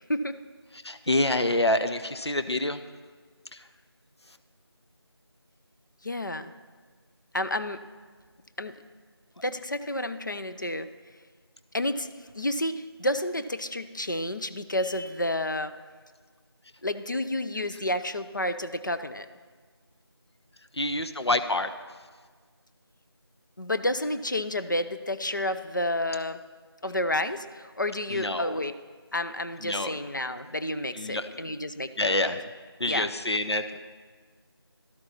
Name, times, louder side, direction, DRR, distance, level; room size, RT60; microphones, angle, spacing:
voice 1, 0.7-2.8 3.5-3.6 20.7-21.7 28.1-28.6 29.6-30.0 30.9-31.3 32.0-32.4 32.8-33.6, left 2 dB, 80° left, 9 dB, 0.8 m, -27 dB
voice 2, 6.0-6.5 7.3-7.8 8.6-8.7 9.4-10.9 11.7-12.1 12.4-15.7 16.8-19.3 23.6-26.4 26.8-28.7 29.1-32.3 32.9-33.1, left 1 dB, 45° left, 10 dB, 0.6 m, -30 dB
13.0 x 12.0 x 4.3 m, 1.5 s
figure-of-eight pair, 170°, 14 cm